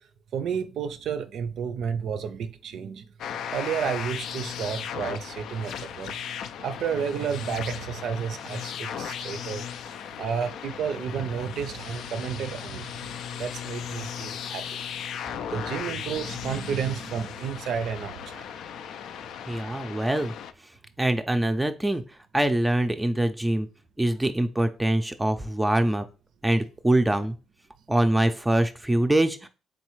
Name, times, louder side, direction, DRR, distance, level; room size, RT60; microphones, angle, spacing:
voice 1, 0.3-3.0 3.5-6.2 6.6-9.6 10.2-14.8 15.5-18.4, right 7 dB, 75° right, 0.4 m, -31 dB
sound 1, 3.2-20.5, left 8 dB, 80° left, 0.3 m, -37 dB
voice 2, 19.5-20.3 21.0-22.0 22.3-23.7 24.0-26.0 26.4-27.3 27.9-29.5, right 1 dB, 10° right, 0.4 m, -24 dB
4.1 x 3.1 x 3.1 m
cardioid pair, 90°, 0 cm